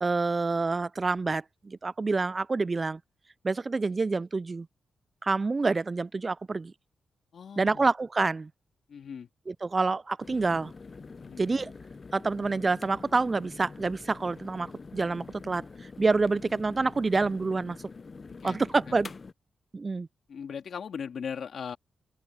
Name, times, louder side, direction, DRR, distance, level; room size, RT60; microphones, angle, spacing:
voice 1, 0.0-3.0 3.4-4.7 5.2-6.7 7.6-8.5 9.5-10.7 11.4-11.7 12.1-14.7 14.9-15.6 16.0-17.8 18.4-19.1 19.7-20.1, right 3 dB, 35° right, 0.4 m, -27 dB
voice 2, 7.3-7.9 8.9-9.3 11.2-11.5 18.3-19.0 20.3-21.8, left 7 dB, 70° left, 3.1 m, -39 dB
sound 1, 10.2-19.3, left 4 dB, 45° left, 0.7 m, -45 dB
open air
cardioid pair, 60°, 0 cm